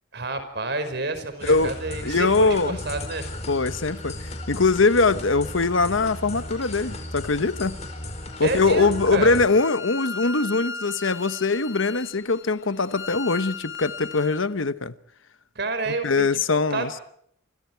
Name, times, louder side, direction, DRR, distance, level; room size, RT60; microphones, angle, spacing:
voice 1, 0.1-3.2 8.4-9.4 15.6-17.0, right 3 dB, 60° right, 5.3 m, -29 dB
voice 2, 1.4-1.7 2.0-2.8 3.5-4.2 4.5-7.8 8.4-14.9 15.9-16.9, left 3 dB, 80° left, 1.1 m, -22 dB
sound 1, 1.4-9.5, left 1 dB, 35° left, 5.0 m, -35 dB
Bowed string instrument, 9.0-14.4, left 4 dB, 65° left, 3.2 m, -37 dB
29.5 x 24.5 x 4.6 m
head